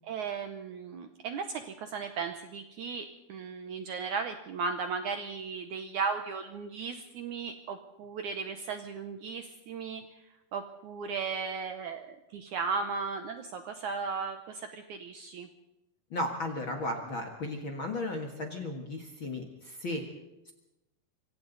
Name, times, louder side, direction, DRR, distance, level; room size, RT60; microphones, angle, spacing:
voice 1, 0.0-10.1 10.5-15.5, right 5 dB, 70° right, 7 dB, 1.9 m, -36 dB
voice 2, 16.1-20.0 20.4-20.5, left 1 dB, 45° left, 2 dB, 1.7 m, -35 dB
25.5 x 25.0 x 4.0 m, 0.95 s
omnidirectional pair, 4.5 m